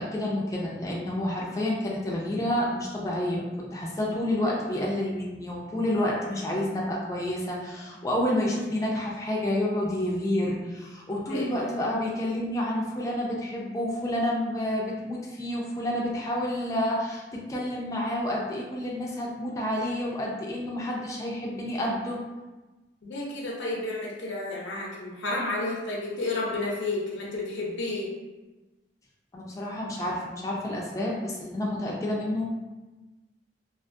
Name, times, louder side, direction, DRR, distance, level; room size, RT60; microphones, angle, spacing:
voice 1, 0.0-22.2 29.3-32.4, left 1 dB, 20° left, -4 dB, 0.3 m, -29 dB
voice 2, 11.3-11.7 23.0-28.1, left 2 dB, 85° left, -4 dB, 0.6 m, -31 dB
2.5 x 2.3 x 2.5 m, 1.1 s
head